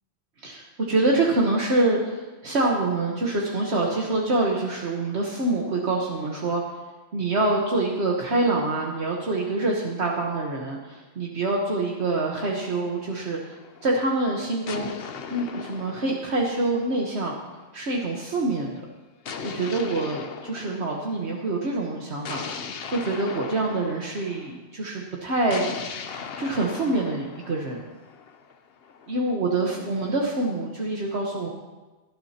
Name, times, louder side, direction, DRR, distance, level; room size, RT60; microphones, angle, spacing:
voice 1, 0.4-6.6 7.1-13.6 13.8-14.9 15.3-17.4 17.7-18.8 19.4-22.4 22.9-25.6 26.4-27.8 29.1-31.5, right 2 dB, 70° right, -2 dB, 1.5 m, -26 dB
sound 1, 12.8-13.9 14.7-17.3 19.3-21.4 22.2-24.6 25.5-29.3, left 6 dB, 60° left, 1.0 m, -38 dB
19.0 x 11.5 x 2.9 m, 1.2 s
omnidirectional pair, 1.2 m